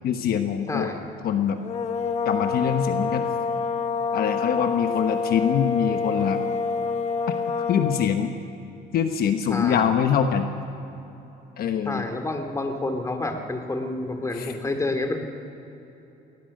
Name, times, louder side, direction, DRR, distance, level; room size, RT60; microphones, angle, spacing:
voice 1, 0.0-0.9 1.2-1.6 2.2-3.2 4.1-6.4 7.7-8.4 8.9-10.5 11.6-12.1 14.3-14.6, left 8 dB, 65° left, 7 dB, 1.1 m, -24 dB
voice 2, 0.7-1.0 9.5-9.9 11.9-15.2, left 2 dB, 20° left, 5 dB, 2.5 m, -29 dB
sound 1, 1.6-8.2, left 5 dB, 40° left, 1.3 m, -27 dB
21.0 x 19.5 x 6.5 m, 3.0 s
cardioid pair, 110°, 17 cm